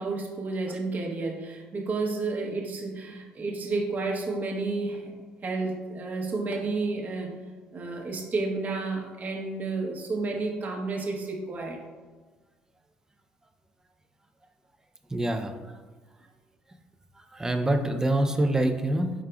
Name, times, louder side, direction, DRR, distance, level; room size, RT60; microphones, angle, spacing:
voice 1, 0.0-5.1 5.4-7.4 7.7-11.8, right 3 dB, 45° right, 0 dB, 1.0 m, -31 dB
voice 2, 15.1-15.5 17.3-19.1, right 1 dB, 15° right, 6 dB, 0.5 m, -25 dB
4.9 x 4.6 x 2.3 m, 1.3 s
supercardioid pair, 65°, 4 cm